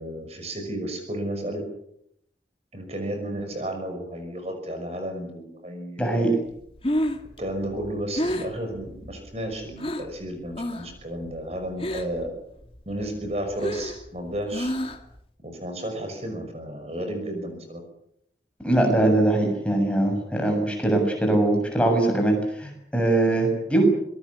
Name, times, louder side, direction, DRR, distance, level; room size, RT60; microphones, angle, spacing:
voice 1, 0.0-1.6 2.7-6.1 7.4-12.3 12.9-14.7 15.4-17.8, right 1 dB, 35° right, 5 dB, 5.6 m, -32 dB
voice 2, 6.0-6.3 18.6-23.9, right 2 dB, 5° left, 2 dB, 7.0 m, -22 dB
Breathing, 6.6-10.2 10.5-11.0 11.3-12.3 12.6-15.2, equal, 30° left, 2.2 m, -30 dB
26.5 x 21.5 x 7.1 m, 0.75 s
head